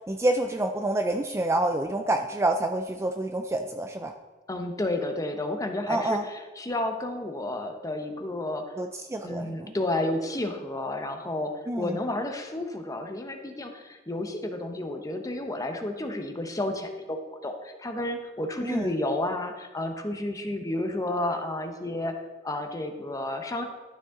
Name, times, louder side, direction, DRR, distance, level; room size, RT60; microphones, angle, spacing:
voice 1, 0.1-4.1 5.9-6.2 8.8-9.7 11.7-12.0 18.6-18.9, right 1 dB, 15° right, 6 dB, 0.4 m, -28 dB
voice 2, 4.5-8.6 9.2-23.6, left 1 dB, 20° left, 5 dB, 0.8 m, -31 dB
12.0 x 6.6 x 3.7 m, 1.3 s
head